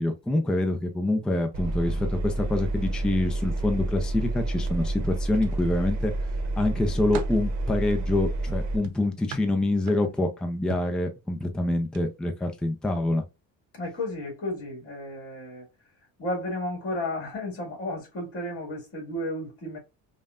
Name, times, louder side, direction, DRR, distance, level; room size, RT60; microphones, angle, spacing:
voice 1, 0.0-6.1 6.6-13.2, left 2 dB, ahead, 0.3 m, -26 dB
Engine, 1.5-8.8, right 2 dB, 50° right, 0.8 m, -29 dB
sound 1, 5.3-6.1 6.6-7.5 8.8-10.3 10.7-11.0 11.8-12.0 12.4-12.6, right 6 dB, 85° right, 0.8 m, -42 dB
voice 2, 13.7-15.6 16.2-19.8, left 1 dB, 40° left, 2.0 m, -33 dB
5.3 x 2.2 x 2.4 m
cardioid pair, 155°, 36 cm